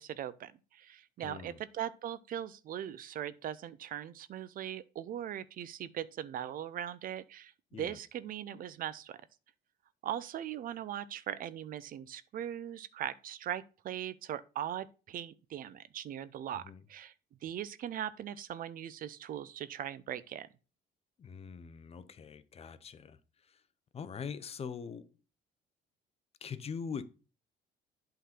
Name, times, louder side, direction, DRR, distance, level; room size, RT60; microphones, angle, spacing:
voice 1, 0.0-9.2 10.0-16.6 16.9-17.1 17.4-20.5, right 10 dB, 55° right, 0.6 m, -40 dB
voice 2, 1.2-1.6 7.7-8.0 16.5-16.8 21.2-23.2 23.5-23.6 23.9-25.1 26.4-27.0, left 6 dB, 35° left, 0.8 m, -42 dB
8.3 x 3.9 x 5.8 m
cardioid pair, 110°, 17 cm